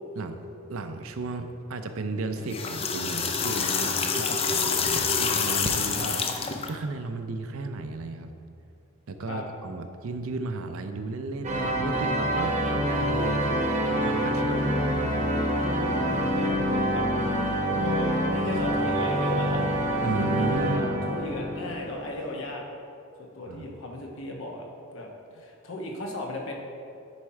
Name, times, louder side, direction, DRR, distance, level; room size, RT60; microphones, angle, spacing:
voice 1, 0.7-6.2 6.7-8.3 9.1-13.5 13.8-15.3 20.0-20.9 23.5-23.7, right 3 dB, 70° right, 7 dB, 0.5 m, -34 dB
sound 1, 2.4-6.7, left 5 dB, 25° left, 0.4 m, -27 dB
sound 2, 11.4-22.4, equal, 30° right, 0.9 m, -26 dB
voice 2, 16.2-19.6 20.6-22.6 23.3-24.6 24.9-25.1 25.3-26.5, left 2 dB, 60° left, 1 dB, 1.1 m, -36 dB
9.6 x 4.3 x 4.7 m, 2.5 s
head